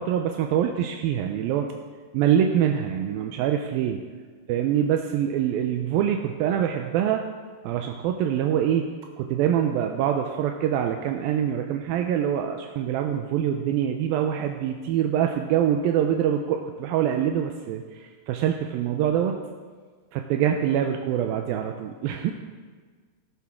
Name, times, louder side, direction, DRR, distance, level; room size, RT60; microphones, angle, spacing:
voice 1, 0.0-1.7 2.1-4.0 4.5-7.2 7.6-8.9 9.2-17.8 18.3-19.4 20.1-22.3, right 9 dB, 80° right, 4 dB, 2.2 m, -24 dB
15.0 x 12.5 x 3.6 m, 1.5 s
omnidirectional pair, 4.7 m